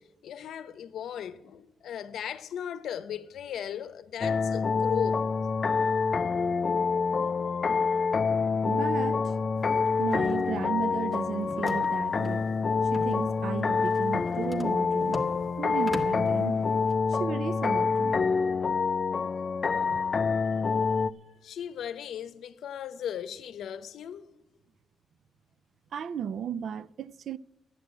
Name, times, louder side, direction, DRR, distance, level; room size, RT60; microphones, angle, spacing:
voice 1, 0.0-5.2 21.3-24.2, left 9 dB, 80° left, 0.7 m, -37 dB
sound 1, 4.2-21.1, left 5 dB, 40° left, 0.4 m, -27 dB
voice 2, 8.6-9.3 10.0-12.5 12.9-15.2 15.6-16.6 17.1-18.3 19.9-20.0 25.9-27.4, right 8 dB, 70° right, 0.4 m, -34 dB
sound 2, 9.6-17.0, left 1 dB, 5° right, 1.4 m, -43 dB
11.0 x 9.1 x 8.1 m
cardioid pair, 95°, 0 cm